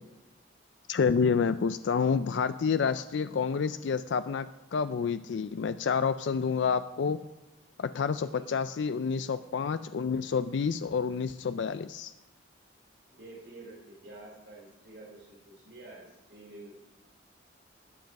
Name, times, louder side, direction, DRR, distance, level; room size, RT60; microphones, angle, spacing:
voice 1, 0.9-7.2 7.8-12.1, left 6 dB, 70° left, 12 dB, 0.4 m, -29 dB
voice 2, 13.1-16.7, right 2 dB, 65° right, -2 dB, 3.2 m, -49 dB
13.0 x 9.3 x 5.3 m, 1.0 s
head